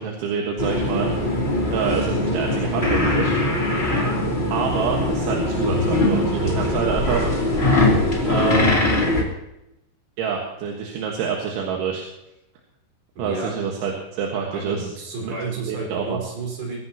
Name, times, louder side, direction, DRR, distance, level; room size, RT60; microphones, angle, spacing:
voice 1, 0.0-1.3 1.7-3.4 4.5-7.3 8.3-9.1 10.2-12.0 13.2-14.9 15.2-15.3 15.7-16.2, right 6 dB, 80° right, 0 dB, 4.0 m, -27 dB
sound 1, 0.6-9.2, left 1 dB, 15° left, 2.8 m, -21 dB
voice 2, 13.2-13.5 14.5-16.8, right 3 dB, 55° right, -2 dB, 6.9 m, -31 dB
24.0 x 15.5 x 3.0 m, 0.87 s
omnidirectional pair, 5.5 m